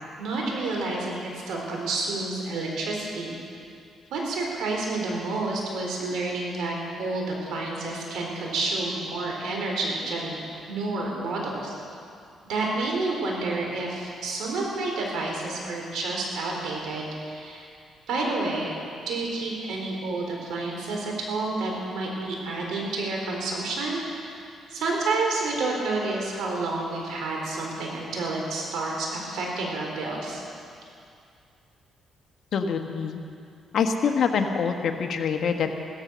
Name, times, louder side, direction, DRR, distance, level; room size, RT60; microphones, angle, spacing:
voice 1, 0.2-3.3 4.1-10.4 10.7-11.7 12.5-17.7 18.1-18.8 19.1-24.3 24.7-30.4, right 2 dB, 80° right, -1 dB, 4.0 m, -29 dB
voice 2, 32.5-33.2 33.7-35.7, left 6 dB, 65° left, 5 dB, 1.4 m, -25 dB
16.5 x 13.5 x 6.4 m, 2.4 s
cardioid pair, 90°, 0 cm